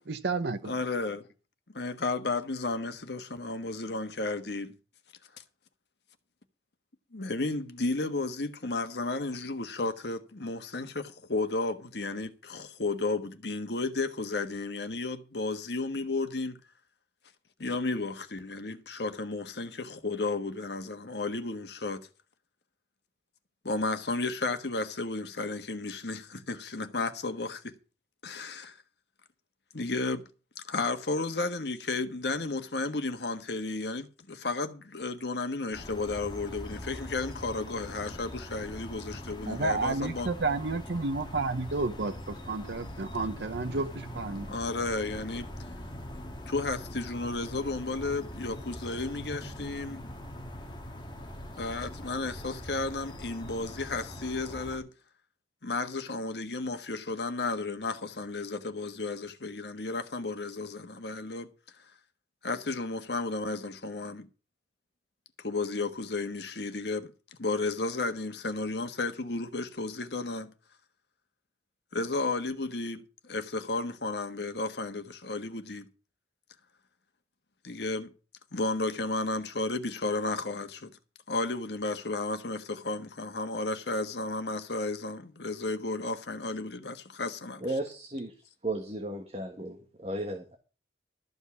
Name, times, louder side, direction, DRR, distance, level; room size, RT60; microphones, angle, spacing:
voice 1, 0.1-0.7 39.5-44.5, right 3 dB, 75° right, 0.8 m, -31 dB
voice 2, 0.6-1.3 1.7-4.7 7.1-16.6 17.6-22.1 23.6-27.7 28.2-28.8 29.7-30.2 30.7-40.3 44.3-45.5 46.5-50.0 51.6-54.9 55.6-61.5 61.8-61.9 62.4-64.3 65.4-67.1 67.4-70.5 71.9-75.9 77.6-78.1 78.5-80.9 81.3-87.6, left 3 dB, 70° left, 1.4 m, -33 dB
sound 1, 35.7-54.8, left 1 dB, 25° left, 1.7 m, -42 dB
voice 3, 87.6-88.3 88.6-90.6, right 1 dB, 35° right, 1.5 m, -35 dB
13.5 x 5.5 x 8.2 m
head